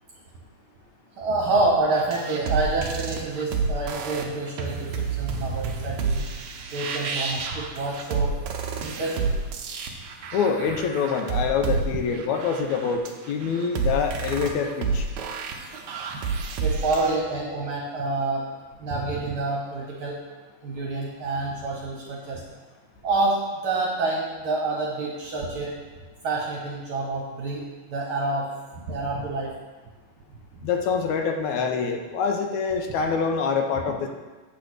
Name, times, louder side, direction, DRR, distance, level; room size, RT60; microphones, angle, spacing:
voice 1, 1.2-6.2 6.7-8.3 8.8-9.3 16.6-18.4 18.8-20.2 20.6-22.4 23.0-23.4 23.6-25.7 26.2-27.6 27.9-28.5 28.9-29.5, right 2 dB, 55° right, -3 dB, 1.6 m, -27 dB
sound 1, 2.0-17.2, right 4 dB, 85° right, 1.2 m, -29 dB
voice 2, 10.3-15.1 30.6-34.1, left 6 dB, 80° left, 4 dB, 2.0 m, -25 dB
8.6 x 3.9 x 6.2 m, 1.3 s
omnidirectional pair, 3.4 m